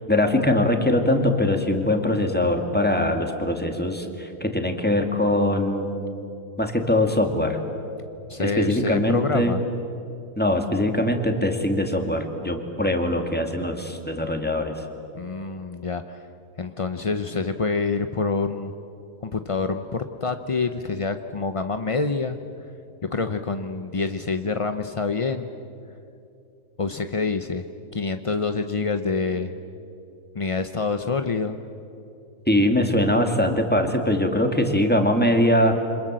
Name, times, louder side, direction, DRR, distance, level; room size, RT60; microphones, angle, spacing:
voice 1, 0.1-5.9 6.6-7.6 8.4-9.5 10.4-14.8 32.5-35.7, left 1 dB, 5° left, 4 dB, 2.2 m, -22 dB
voice 2, 8.3-9.6 15.1-16.2 16.6-18.7 19.2-22.4 23.1-25.5 26.8-27.6 27.9-29.5 30.3-31.6, left 4 dB, 40° left, 8 dB, 0.4 m, -26 dB
28.0 x 26.0 x 7.6 m, 2.8 s
omnidirectional pair, 1.7 m